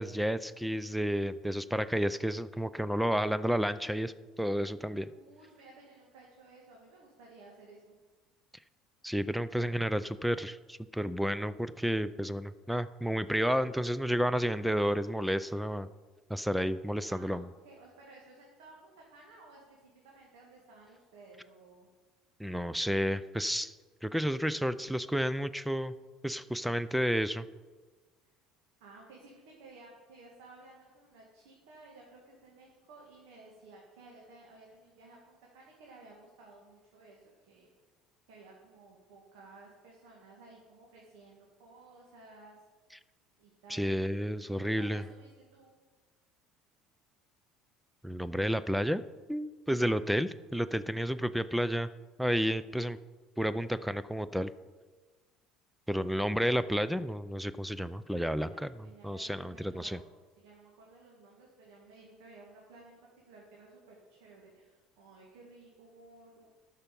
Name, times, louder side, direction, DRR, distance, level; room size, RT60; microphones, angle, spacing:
voice 1, 0.0-5.1 9.0-15.9 16.3-17.5 22.4-23.7 24.0-25.9 26.2-27.5 43.7-45.0 48.0-49.0 49.3-51.9 52.2-53.0 53.4-54.5 55.9-60.0, equal, ahead, 15 dB, 0.4 m, -31 dB
voice 2, 5.1-8.0 17.1-21.9 28.8-37.7 38.3-42.6 43.4-43.8 44.5-45.8 58.4-60.1 60.4-63.0 63.3-66.5, right 3 dB, 85° right, -2 dB, 2.0 m, -55 dB
12.5 x 5.7 x 5.3 m, 1.3 s
supercardioid pair, 110°, 0 cm